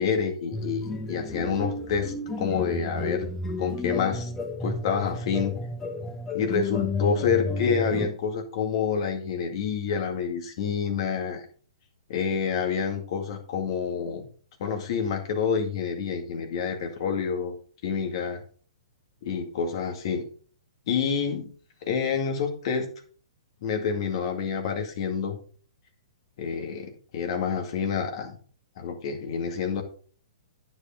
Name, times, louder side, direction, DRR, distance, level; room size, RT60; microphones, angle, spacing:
voice 1, 0.0-3.3 3.6-4.3 4.6-5.5 6.3-11.4 12.1-14.3 14.6-17.5 17.8-18.4 19.2-20.3 20.9-21.5 21.8-22.9 23.6-25.4 26.4-28.4 28.8-29.8, left 6 dB, 55° left, 4 dB, 2.1 m, -28 dB
sound 1, 0.5-8.1, left 2 dB, 15° left, 1.1 m, -32 dB
9.8 x 7.6 x 3.7 m, 0.44 s
hypercardioid pair, 120°, 3 cm